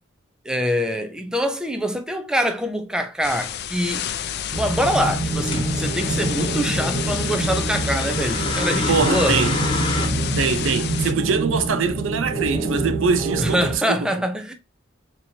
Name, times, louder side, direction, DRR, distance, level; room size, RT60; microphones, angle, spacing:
voice 1, 0.5-4.2 4.5-9.4 13.4-14.5, equal, 5° right, 0.5 m, -24 dB
sound 1, 3.2-11.1, left 9 dB, 55° left, 0.4 m, -30 dB
sound 2, 4.5-13.7, right 2 dB, 45° right, 1.3 m, -26 dB
sound 3, 5.5-5.7 7.5-10.1, left 2 dB, 25° left, 1.0 m, -28 dB
voice 2, 8.9-9.6 10.4-14.0, right 5 dB, 75° right, 0.5 m, -23 dB
4.2 x 3.0 x 2.7 m
head